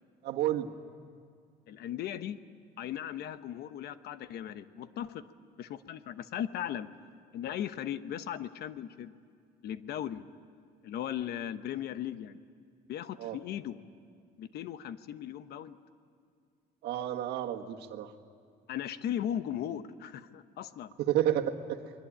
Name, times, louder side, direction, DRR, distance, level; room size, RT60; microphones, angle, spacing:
voice 1, 0.2-0.7 13.2-13.4 16.8-18.1 21.0-21.9, right 11 dB, 75° right, 4 dB, 1.7 m, -31 dB
voice 2, 1.7-2.4 2.8-5.2 5.6-6.9 7.3-9.1 9.6-10.3 10.8-12.4 12.9-13.8 14.4-15.8 18.7-20.9, left 10 dB, 70° left, 12 dB, 1.1 m, -37 dB
28.5 x 21.5 x 8.8 m, 2.2 s
cardioid pair, 110°, 17 cm